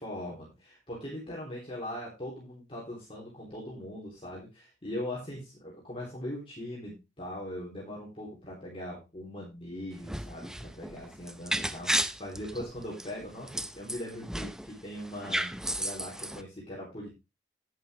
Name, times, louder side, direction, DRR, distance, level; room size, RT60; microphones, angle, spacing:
voice 1, 0.0-17.1, left 1 dB, 30° left, -4 dB, 3.6 m, -40 dB
sound 1, 9.9-14.7 15.0-16.4, right 1 dB, 5° right, 0.5 m, -33 dB
11.0 x 9.2 x 3.3 m, 0.24 s
head